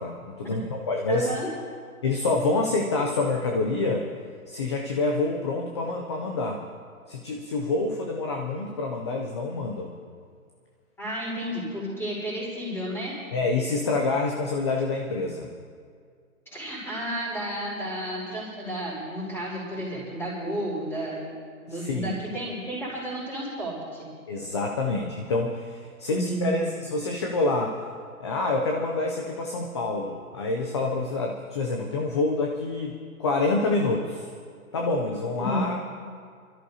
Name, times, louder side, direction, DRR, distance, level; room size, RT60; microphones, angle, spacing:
voice 1, 0.0-1.3 2.0-4.1 4.5-6.6 7.1-9.9 13.3-15.5 21.7-22.2 24.3-27.8 28.2-34.3 34.7-36.0, left 3 dB, 20° left, 1 dB, 0.4 m, -27 dB
voice 2, 1.1-1.5 11.0-13.1 16.5-21.4 21.6-24.1 26.1-26.7 35.4-35.6, right 1 dB, 5° left, -6 dB, 4.5 m, -32 dB
25.5 x 13.0 x 2.8 m, 2.1 s
hypercardioid pair, 145°, 43 cm